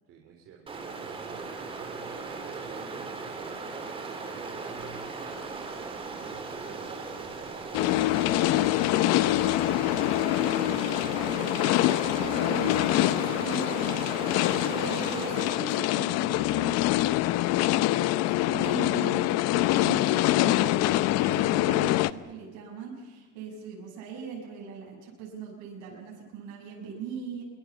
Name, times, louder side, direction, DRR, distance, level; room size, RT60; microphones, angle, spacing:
voice 1, 0.0-1.4 1.8-3.6 4.0-5.2 6.0-8.1 8.8-11.2, right 7 dB, 45° right, 1 dB, 3.5 m, -50 dB
Stream, 0.7-15.7, right 4 dB, 15° right, 3.2 m, -38 dB
sound 1, 7.7-22.1, left 16 dB, 50° left, 0.6 m, -25 dB
voice 2, 12.2-14.3 14.6-17.2 17.6-27.4, right 5 dB, 65° right, -1 dB, 6.7 m, -40 dB
26.5 x 23.5 x 7.2 m, 1.4 s
cardioid pair, 175°, 32 cm